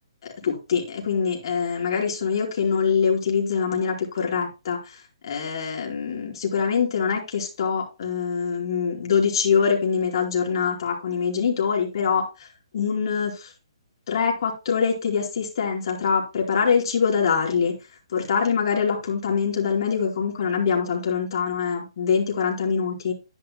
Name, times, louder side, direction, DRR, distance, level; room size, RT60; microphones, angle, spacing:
voice 1, 0.2-12.5 12.7-13.5 14.1-17.7 18.1-23.1, left 6 dB, 55° left, 4.4 m, -24 dB
12.5 x 10.5 x 2.2 m
hypercardioid pair, 150°, 3 cm